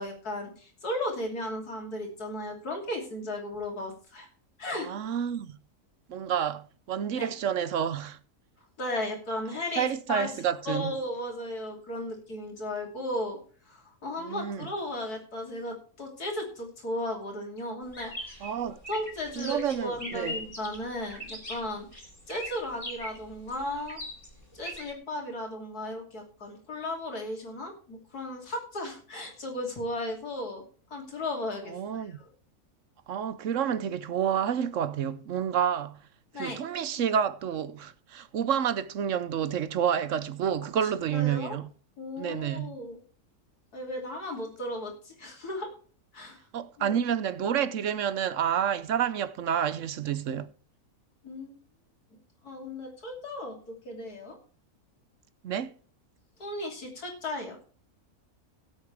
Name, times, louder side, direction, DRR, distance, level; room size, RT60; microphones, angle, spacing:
voice 1, 0.0-4.3 4.6-4.9 7.2-7.3 8.8-10.4 10.7-13.4 13.7-24.0 24.5-30.6 30.9-32.3 36.3-36.6 41.1-41.6 42.0-43.0 43.7-45.7 46.1-46.4 46.8-47.0 51.2-51.5 52.4-54.4 56.4-57.6, left 1 dB, 80° left, 3.5 m, -35 dB
voice 2, 4.8-5.6 6.1-8.2 9.8-10.9 14.2-14.7 18.4-18.8 19.4-20.4 31.7-32.2 33.1-36.0 36.3-41.7 42.2-42.8 46.5-50.5 55.4-55.7, right 8 dB, 60° right, 1.0 m, -29 dB
sound 1, 17.9-24.9, left 1 dB, 20° left, 3.2 m, -41 dB
17.0 x 8.2 x 3.4 m
omnidirectional pair, 1.6 m